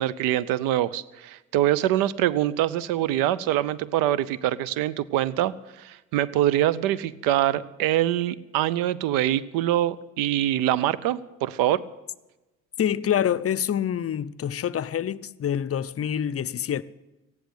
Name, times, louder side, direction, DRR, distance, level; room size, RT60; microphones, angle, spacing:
voice 1, 0.0-11.8, right 13 dB, 85° right, 0.6 m, -24 dB
voice 2, 12.8-16.8, left 9 dB, 45° left, 0.6 m, -26 dB
14.5 x 10.5 x 8.4 m
supercardioid pair, 60°, 33 cm